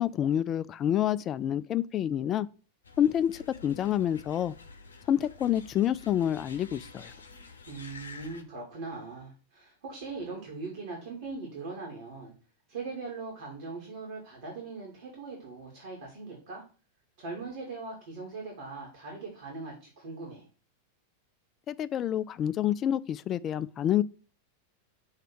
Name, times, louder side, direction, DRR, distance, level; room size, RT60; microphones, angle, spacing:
voice 1, 0.0-2.5 3.0-4.5 5.1-7.1 21.7-24.0, left 10 dB, 30° left, 0.3 m, -28 dB
sound 1, 2.8-8.4, left 3 dB, 75° left, 0.7 m, -49 dB
voice 2, 7.7-12.3 12.7-16.6 17.2-20.5, right 3 dB, 55° right, 2.3 m, -40 dB
6.4 x 3.3 x 5.9 m
figure-of-eight pair, 90°, 0 cm